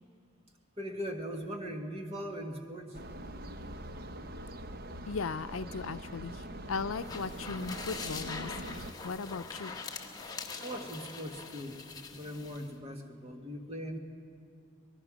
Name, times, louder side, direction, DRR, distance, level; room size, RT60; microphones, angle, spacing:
voice 1, 0.8-3.0 10.6-11.8 12.1-14.0, equal, 30° right, 4 dB, 1.7 m, -40 dB
sound 1, 2.9-8.9, right 1 dB, 50° right, 0.8 m, -43 dB
voice 2, 5.1-6.3 6.7-8.8 9.0-9.8, left 4 dB, 80° left, 12 dB, 0.6 m, -37 dB
sound 2, 6.9-12.7, left 4 dB, 20° left, 1.3 m, -43 dB
25.0 x 19.5 x 6.2 m, 2.5 s
head